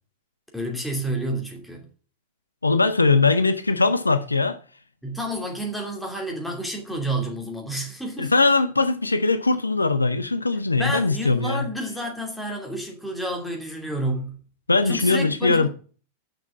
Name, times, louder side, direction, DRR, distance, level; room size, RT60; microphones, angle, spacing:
voice 1, 0.5-1.9 5.0-8.3 10.7-14.4 14.8-15.7, right 1 dB, ahead, 2.7 m, -30 dB
voice 2, 2.6-4.6 8.2-11.6 14.7-15.7, left 3 dB, 80° left, 0.6 m, -20 dB
6.8 x 6.0 x 7.3 m
figure-of-eight pair, 90°, 0 cm